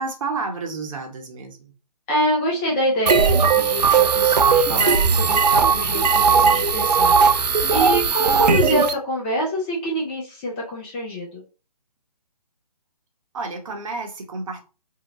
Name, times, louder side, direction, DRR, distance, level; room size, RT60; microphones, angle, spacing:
voice 1, 0.0-1.7 13.3-14.6, right 4 dB, 55° right, 0.9 m, -30 dB
voice 2, 2.1-7.2 7.7-11.4, equal, 15° left, 0.5 m, -25 dB
sound 1, 3.1-8.9, right 6 dB, 85° right, 0.4 m, -17 dB
2.7 x 2.1 x 2.9 m
figure-of-eight pair, 145°, 21 cm